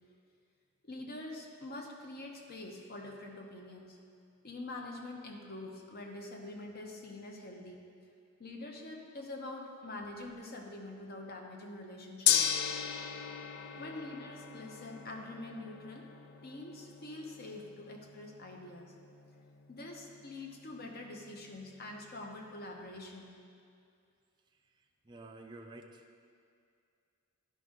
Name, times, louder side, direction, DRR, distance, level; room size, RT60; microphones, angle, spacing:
voice 1, 0.8-4.0 4.4-7.8 8.4-12.6 13.8-16.1 16.4-19.0 19.7-23.4, left 2 dB, 50° left, 1 dB, 0.8 m, -45 dB
Gong, 12.3-22.5, left 9 dB, 90° left, 0.4 m, -37 dB
voice 2, 25.0-26.0, right 2 dB, 20° right, 2 dB, 0.4 m, -51 dB
11.0 x 5.2 x 3.8 m, 2.4 s
head